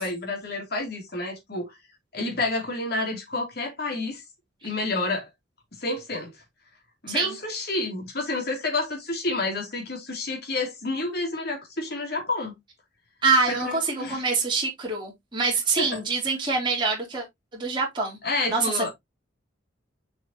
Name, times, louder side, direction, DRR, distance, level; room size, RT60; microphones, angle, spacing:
voice 1, 0.0-1.8 2.1-4.2 4.6-5.3 5.8-6.3 7.0-12.5 13.5-14.3 15.8-16.0 18.2-18.9, left 2 dB, 55° left, 2.8 m, -29 dB
voice 2, 13.2-17.2 17.5-18.2 18.5-18.9, right 4 dB, 25° right, 3.2 m, -25 dB
7.1 x 5.6 x 2.9 m
head